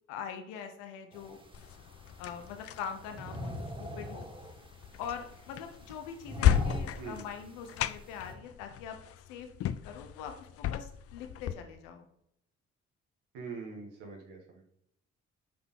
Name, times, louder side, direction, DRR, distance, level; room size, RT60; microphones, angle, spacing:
voice 1, 0.1-1.4 2.2-4.3 5.0-9.0 9.3-12.1, left 7 dB, 90° left, 6 dB, 0.8 m, -43 dB
sound 1, 1.1-8.4, equal, 15° right, 1.8 m, -43 dB
sound 2, 1.5-11.5, left 11 dB, 50° left, 0.4 m, -34 dB
voice 2, 13.3-14.6, right 5 dB, 90° right, 0 dB, 1.4 m, -43 dB
5.7 x 5.4 x 3.7 m, 0.74 s
hypercardioid pair, 50°, 30 cm